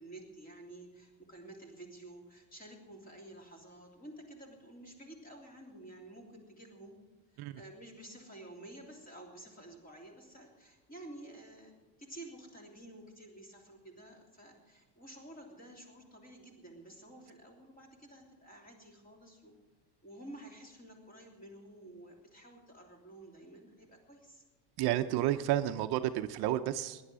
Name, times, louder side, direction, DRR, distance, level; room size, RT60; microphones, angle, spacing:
voice 1, 0.0-6.9 7.3-11.7 12.0-19.5 20.0-24.4, right 1 dB, 20° left, 1 dB, 3.2 m, -51 dB
voice 2, 24.8-27.0, right 13 dB, 60° right, 9 dB, 0.8 m, -31 dB
18.0 x 10.5 x 6.2 m, 1.2 s
cardioid pair, 165°, 44 cm